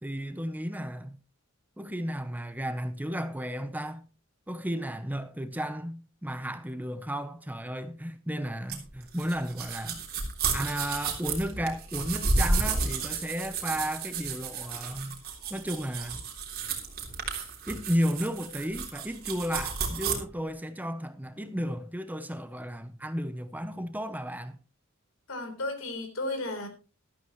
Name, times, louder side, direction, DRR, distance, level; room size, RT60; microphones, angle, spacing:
voice 1, 0.0-1.2 1.8-4.0 4.5-10.0 10.5-15.2 15.5-16.2 17.7-24.6, equal, 10° right, 0.8 m, -33 dB
sound 1, 8.7-20.1, right 4 dB, 45° right, 3.4 m, -32 dB
voice 2, 25.3-26.7, left 2 dB, 70° left, 3.8 m, -33 dB
14.0 x 13.0 x 3.1 m
head